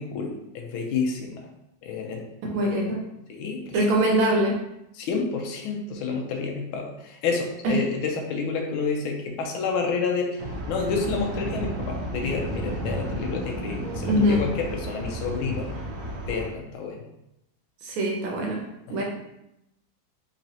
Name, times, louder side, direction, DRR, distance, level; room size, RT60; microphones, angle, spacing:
voice 1, 0.0-1.5 1.8-2.2 2.6-2.9 3.3-3.8 4.9-15.7 16.3-17.0 18.9-19.0, left 5 dB, 80° left, 1 dB, 1.4 m, -29 dB
voice 2, 2.5-3.0 3.7-4.6 7.6-7.7 14.1-14.4 17.8-18.6 18.9-19.0, equal, 85° right, -1 dB, 1.5 m, -23 dB
sound 1, 10.4-16.5, right 1 dB, 70° right, 1.3 m, -32 dB
4.1 x 3.0 x 2.7 m, 0.84 s
omnidirectional pair, 2.3 m